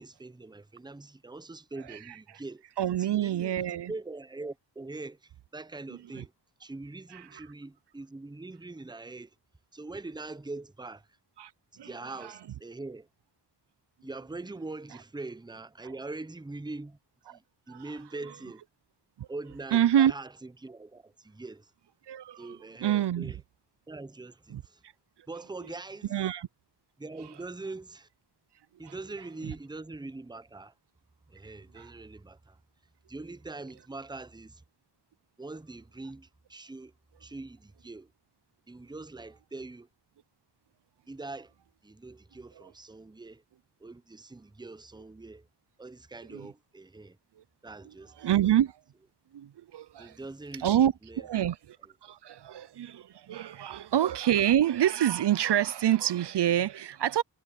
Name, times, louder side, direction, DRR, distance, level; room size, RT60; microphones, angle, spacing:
voice 1, 0.0-2.6 2.9-6.3 6.6-9.3 9.7-11.1 11.7-13.1 14.0-17.0 17.3-18.6 19.3-21.7 22.4-23.4 23.9-24.8 25.3-26.2 27.0-28.1 28.8-30.7 31.3-32.6 33.1-34.6 35.4-36.9 37.2-38.1 38.7-39.9 41.1-41.5 41.8-43.4 43.8-45.5 45.8-47.2 47.6-48.1 50.0-51.5 53.6-53.8, right 3 dB, 10° right, 0.7 m, -43 dB
voice 2, 2.8-3.9 6.1-6.2 7.1-7.2 11.4-11.5 11.8-11.9 12.2-12.3 17.3-17.4 17.7-17.8 19.2-19.3 19.7-20.1 22.1-23.3 24.5-24.6 26.1-26.5 28.8-28.9 29.4-29.5 31.8-31.9 46.3-46.5 48.2-48.8 49.3-50.2 50.6-51.8 52.0-57.2, right 11 dB, 75° right, 0.6 m, -27 dB
wide cardioid pair, 65°, 41 cm